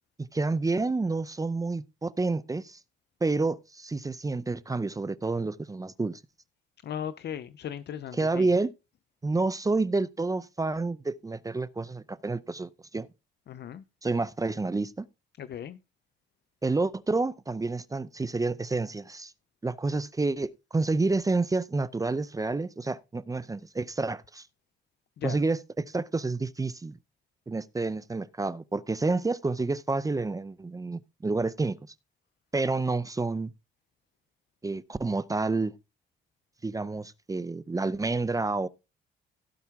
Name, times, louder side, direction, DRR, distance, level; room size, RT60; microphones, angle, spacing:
voice 1, 0.3-2.8 3.2-6.2 8.2-8.7 9.2-13.1 14.0-15.1 16.6-19.3 19.6-24.5 25.2-27.0 27.5-31.8 32.5-33.5 34.6-35.7 36.6-38.7, right 3 dB, 15° right, 0.6 m, -29 dB
voice 2, 6.8-8.5 13.5-13.8 15.4-15.8 25.2-25.4, left 9 dB, 60° left, 0.7 m, -37 dB
16.5 x 5.6 x 3.6 m
cardioid pair, 90°, 20 cm